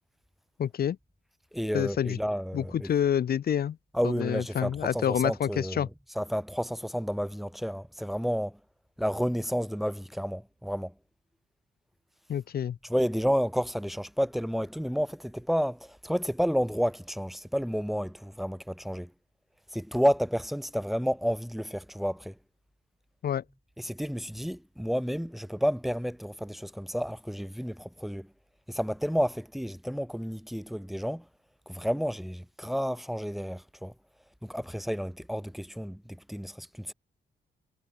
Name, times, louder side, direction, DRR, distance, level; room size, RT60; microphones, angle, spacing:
voice 1, 0.6-1.0 1.7-2.2 2.5-3.8 4.0-5.9 12.3-12.8 23.2-23.4, left 9 dB, 65° left, 3.2 m, -28 dB
voice 2, 1.5-2.9 3.9-5.9 6.1-8.6 9.0-10.9 12.8-19.1 19.7-22.4 23.8-28.3 28.7-31.3 31.7-33.9 34.4-36.9, equal, ahead, 2.8 m, -31 dB
cardioid pair, 100°, 17 cm